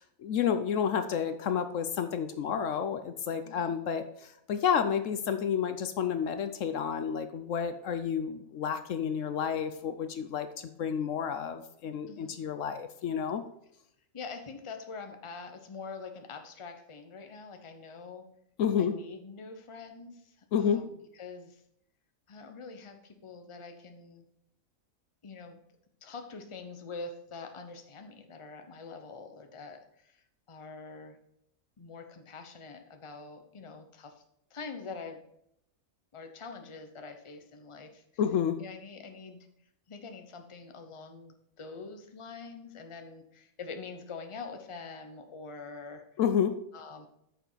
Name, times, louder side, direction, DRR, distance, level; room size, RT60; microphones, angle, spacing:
voice 1, 0.0-4.0 4.5-10.5 10.8-13.4 18.6-19.0 20.5-20.8 38.2-38.6 46.2-46.5, left 7 dB, 70° left, 10 dB, 1.0 m, -30 dB
voice 2, 14.1-18.3 18.8-20.9 21.2-21.6 22.3-24.2 25.2-25.6 26.0-30.2 30.5-31.2 31.8-34.1 34.5-35.2 36.1-38.0 38.6-39.4 39.9-46.0 46.7-47.1, left 4 dB, 25° left, 6 dB, 0.8 m, -45 dB
9.2 x 6.7 x 4.0 m, 0.75 s
omnidirectional pair, 1.4 m